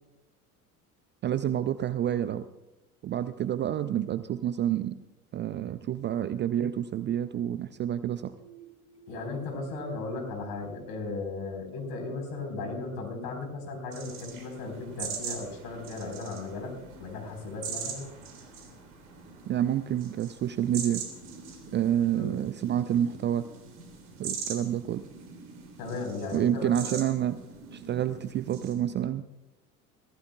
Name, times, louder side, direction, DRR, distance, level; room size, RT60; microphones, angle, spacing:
voice 1, 1.2-2.5 3.0-5.0 5.3-8.3 19.5-21.0 21.7-23.5 24.2-25.1 26.3-27.4 27.7-29.2, right 10 dB, 25° right, 14 dB, 0.4 m, -28 dB
sound 1, 8.2-11.9, right 4 dB, 15° left, 4.8 m, -52 dB
voice 2, 9.1-16.7 17.0-18.1 22.1-22.3 25.8-27.0, left 3 dB, 50° left, 5 dB, 4.4 m, -36 dB
sound 2, 13.9-28.7, right 6 dB, 70° right, 3.2 m, -42 dB
23.5 x 15.0 x 2.3 m, 1.0 s
figure-of-eight pair, 70°, 46 cm